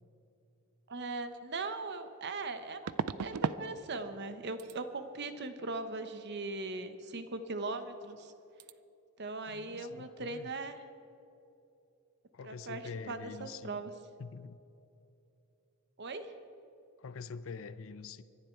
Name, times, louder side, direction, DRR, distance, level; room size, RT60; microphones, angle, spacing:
voice 1, 0.9-2.9 3.2-8.3 9.2-10.8 12.4-12.8 13.1-13.9 16.0-16.3, right 3 dB, 50° right, 9 dB, 1.0 m, -39 dB
sound 1, 1.3-1.4 2.9-3.7 3.9-4.3 4.6-4.8 7.7-7.8 8.1-8.3 8.6-8.7, right 6 dB, 85° right, 0.5 m, -36 dB
voice 2, 9.5-10.5 12.3-13.8 14.2-14.6 17.0-18.2, left 5 dB, 60° left, 15 dB, 0.5 m, -45 dB
25.0 x 11.0 x 4.5 m, 2.8 s
head